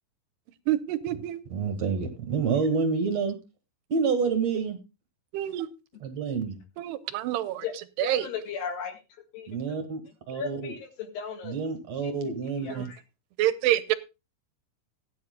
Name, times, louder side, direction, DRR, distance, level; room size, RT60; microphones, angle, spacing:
voice 1, 0.7-1.4 5.3-5.7 6.8-7.7 8.0-8.3 13.4-13.9, right 13 dB, 75° right, 14 dB, 2.7 m, -27 dB
voice 2, 1.5-3.4 3.9-4.8 6.0-6.6 9.5-10.0 10.3-10.8 11.4-12.9, right 5 dB, 50° right, 8 dB, 2.2 m, -28 dB
voice 3, 8.0-9.0 9.3-9.5 10.3-11.6 12.0-12.1 12.6-13.0, left 7 dB, 70° left, 5 dB, 3.7 m, -35 dB
18.5 x 10.5 x 2.2 m, 0.27 s
omnidirectional pair, 5.2 m